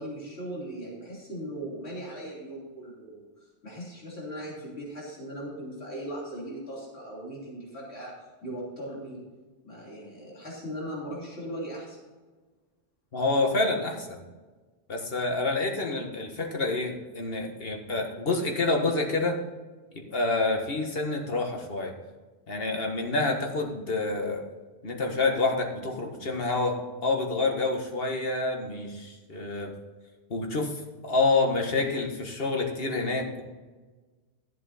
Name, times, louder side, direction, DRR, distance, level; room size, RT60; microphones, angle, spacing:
voice 1, 0.0-3.3 3.6-8.1 8.4-9.2 9.6-12.0, right 1 dB, 85° left, -4 dB, 3.4 m, -38 dB
voice 2, 13.1-14.2 14.9-19.4 20.1-21.9 22.5-24.4 24.8-29.7 30.3-30.7 31.0-33.4, left 3 dB, 65° left, 2 dB, 1.8 m, -28 dB
13.5 x 7.3 x 4.1 m, 1.3 s
omnidirectional pair, 1.1 m